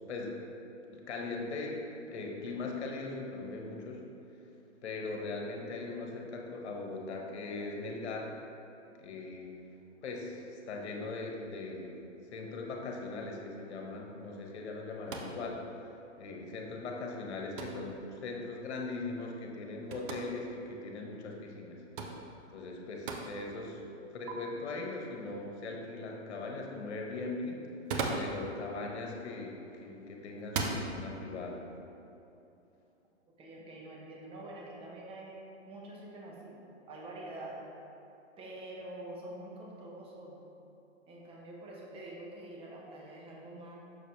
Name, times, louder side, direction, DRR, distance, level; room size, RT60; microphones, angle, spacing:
voice 1, 0.9-4.0 4.8-8.3 9.0-9.5 10.0-12.0 12.3-15.6 16.2-21.8 22.5-27.6 28.1-29.5 29.8-31.6, left 3 dB, 65° left, 1 dB, 1.3 m, -40 dB
sound 1, 15.1-15.4 17.6-17.9 19.9-20.2 22.0-22.2 23.1-23.3 24.3-24.4 27.7-28.4 29.5-29.8 30.4-30.8, right 4 dB, 45° right, 0.8 m, -35 dB
voice 2, 33.4-36.6 36.9-37.6 38.4-40.4 41.1-43.8, right 1 dB, 15° right, -2 dB, 0.9 m, -46 dB
6.7 x 6.7 x 3.2 m, 2.9 s
hypercardioid pair, 130°, 36 cm